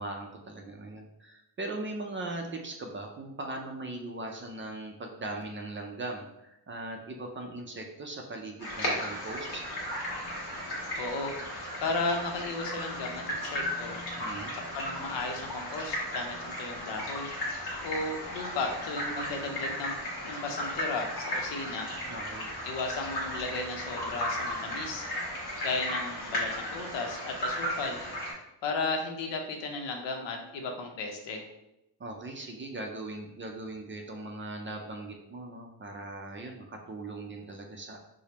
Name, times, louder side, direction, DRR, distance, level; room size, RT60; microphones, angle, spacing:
voice 1, 0.0-9.6 14.2-14.6 22.0-22.5 32.0-38.0, right 2 dB, 30° right, 2 dB, 0.4 m, -39 dB
sound 1, 8.6-28.3, equal, 60° left, 1.3 m, -35 dB
voice 2, 11.0-11.4 11.8-14.0 14.5-17.3 17.8-20.0 20.2-21.9 22.6-25.0 25.6-28.0 28.6-31.5, left 3 dB, 80° left, 3 dB, 0.7 m, -35 dB
4.9 x 2.0 x 2.9 m, 0.87 s
cardioid pair, 130°, 43 cm